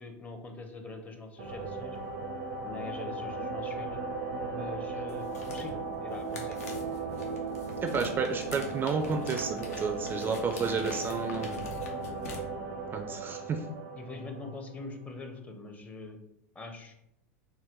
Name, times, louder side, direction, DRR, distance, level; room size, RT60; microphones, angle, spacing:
voice 1, 0.0-2.0 2.6-4.0 4.5-6.8 13.9-16.2 16.5-16.9, left 3 dB, 15° left, 5 dB, 0.6 m, -43 dB
Piano drone, 1.4-15.0, right 3 dB, 75° right, 0.6 m, -37 dB
sound 1, 5.1-12.4, left 2 dB, 85° left, 0.8 m, -45 dB
voice 2, 7.8-11.6 12.9-13.6, right 5 dB, 25° right, 5 dB, 0.4 m, -31 dB
4.0 x 2.1 x 3.7 m, 0.81 s
hypercardioid pair, 110°, 8 cm